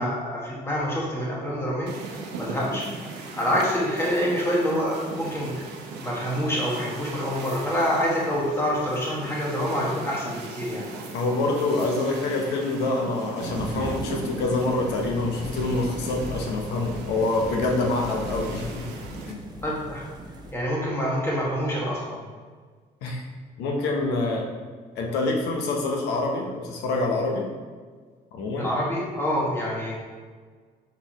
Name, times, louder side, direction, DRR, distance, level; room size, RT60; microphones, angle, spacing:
voice 1, 0.0-1.9 2.4-2.8 3.2-5.6 6.0-10.9 19.6-20.0 20.5-22.2 28.6-29.9, equal, 15° left, -5 dB, 1.3 m, -26 dB
sound 1, 1.9-19.3, right 3 dB, 90° right, 0.6 m, -39 dB
voice 2, 11.1-18.9 19.3-19.4 23.0-23.2 23.6-24.5 24.9-27.5 28.3-28.8, left 2 dB, 85° left, 1 dB, 0.7 m, -26 dB
sound 2, 13.4-20.5, equal, 25° right, 0.7 m, -37 dB
4.2 x 4.0 x 3.0 m, 1.5 s
cardioid pair, 110°, 17 cm